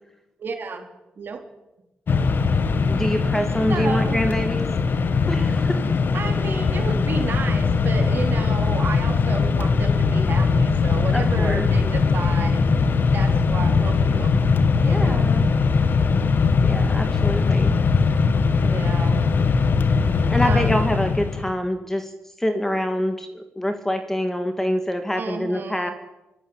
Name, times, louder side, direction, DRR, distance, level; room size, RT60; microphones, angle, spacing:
voice 1, 0.4-0.8 1.2-1.4 3.7-4.2 6.1-12.6 13.1-14.3 14.8-15.3 18.6-19.2 20.2-20.8 25.2-25.9, right 4 dB, 50° right, 4 dB, 4.2 m, -32 dB
Mechanisms, 2.1-21.5, left 4 dB, 50° left, 1.6 m, -20 dB
voice 2, 2.9-4.7 5.3-5.8 11.1-11.7 14.9-15.5 16.6-17.7 20.3-22.1 22.4-25.9, equal, 10° left, 7 dB, 2.3 m, -25 dB
24.5 x 16.0 x 9.1 m, 0.99 s
cardioid pair, 120°, 4 cm